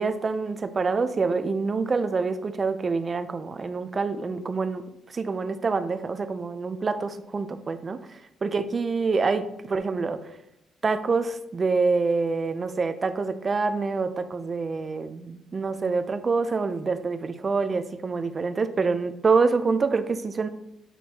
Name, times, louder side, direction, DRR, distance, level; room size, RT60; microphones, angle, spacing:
voice 1, 0.0-4.8 5.1-10.3 10.8-20.5, right 4 dB, 35° right, 10 dB, 0.5 m, -26 dB
8.2 x 4.3 x 2.8 m, 0.82 s
cardioid pair, 90°, 0 cm